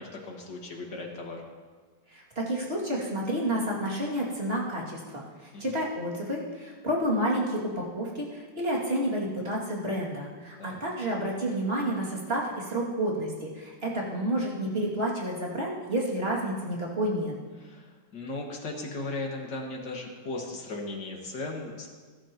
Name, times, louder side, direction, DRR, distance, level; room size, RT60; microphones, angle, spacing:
voice 1, 0.0-1.4 5.5-5.7 10.6-10.8 17.6-21.9, left 2 dB, 60° left, 0 dB, 2.5 m, -37 dB
voice 2, 2.1-17.3, right 1 dB, 30° right, -4 dB, 2.7 m, -30 dB
21.0 x 12.0 x 3.0 m, 1.5 s
omnidirectional pair, 2.2 m